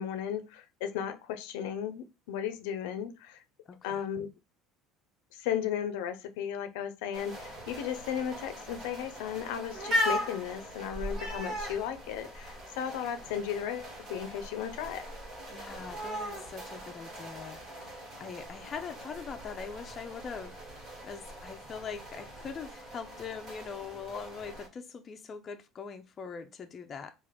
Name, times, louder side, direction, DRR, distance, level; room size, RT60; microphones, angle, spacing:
voice 1, 0.0-3.4 3.8-4.3 5.3-15.1, left 9 dB, 85° left, 0.5 m, -35 dB
voice 2, 3.7-4.0 15.5-17.6 18.2-27.1, left 6 dB, 35° left, 0.5 m, -42 dB
sound 1, 7.1-24.7, equal, 45° right, 1.6 m, -39 dB
3.4 x 2.5 x 3.7 m
supercardioid pair, 120°, 0 cm